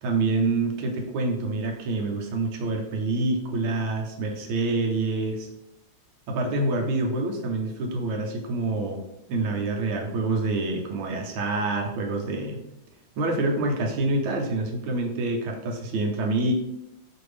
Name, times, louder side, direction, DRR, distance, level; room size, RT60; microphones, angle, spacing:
voice 1, 0.0-5.5 6.3-9.0 9.3-12.6 13.2-16.5, right 2 dB, 90° right, 1 dB, 1.6 m, -26 dB
5.0 x 2.6 x 3.2 m, 0.87 s
omnidirectional pair, 2.3 m